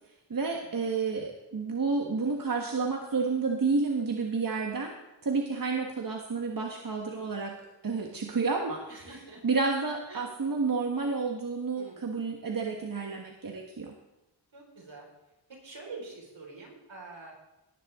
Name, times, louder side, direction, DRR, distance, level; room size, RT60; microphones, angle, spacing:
voice 1, 0.3-4.9 5.2-7.5 7.8-9.1 9.4-13.9, right 4 dB, 45° right, 1 dB, 1.5 m, -30 dB
voice 2, 8.9-9.4 10.1-10.2 11.7-12.0 14.5-15.1 15.6-17.3, right 3 dB, 70° right, -2 dB, 4.8 m, -46 dB
18.0 x 10.0 x 3.7 m, 0.95 s
wide cardioid pair, 80°, 46 cm